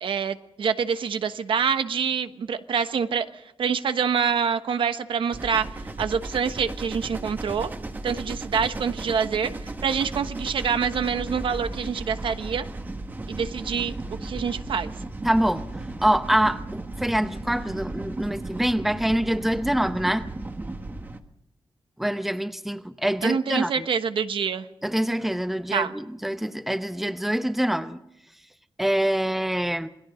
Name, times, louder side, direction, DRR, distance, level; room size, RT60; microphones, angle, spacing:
voice 1, 0.0-3.3 3.6-5.7 6.0-7.7 8.0-12.6 13.3-13.9 14.2-14.9 23.2-24.7 25.7-25.9, right 6 dB, 90° right, 10 dB, 1.2 m, -26 dB
sound 1, 5.3-21.2, right 2 dB, 20° right, 1.3 m, -35 dB
voice 2, 15.2-15.7 16.0-20.3 22.0-23.9 24.8-28.0 28.8-29.9, right 1 dB, 5° right, 10 dB, 0.8 m, -25 dB
27.5 x 20.5 x 5.1 m, 0.81 s
wide cardioid pair, 180°, 9 cm